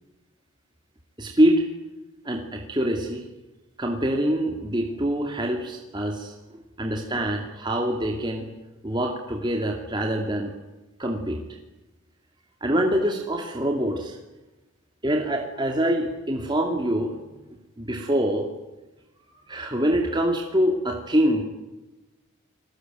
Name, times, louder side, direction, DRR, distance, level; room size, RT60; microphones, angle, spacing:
voice 1, 1.2-1.6 2.2-3.2 3.8-8.5 8.8-10.5 11.0-11.4 12.6-14.2 15.0-17.1 17.8-18.5 19.5-21.4, right 1 dB, 20° right, 2 dB, 2.5 m, -25 dB
29.0 x 20.5 x 9.3 m, 1.1 s
head